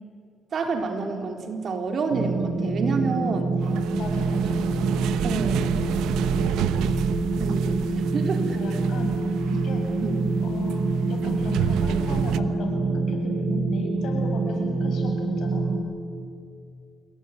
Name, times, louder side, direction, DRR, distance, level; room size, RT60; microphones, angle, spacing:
voice 1, 0.5-3.5 5.2-5.7 6.8-6.9 7.4-8.4 10.0-10.2, right 4 dB, 55° right, 4 dB, 3.8 m, -28 dB
sound 1, 2.1-15.8, right 3 dB, 75° right, 7.6 m, -26 dB
sound 2, 3.6-12.4, right 10 dB, 90° right, 0.9 m, -31 dB
voice 2, 3.9-4.6 8.4-9.1 9.5-9.8 10.4-15.7, left 4 dB, 75° left, 2 dB, 7.8 m, -37 dB
27.5 x 22.0 x 9.4 m, 2.3 s
cardioid pair, 90°, 0 cm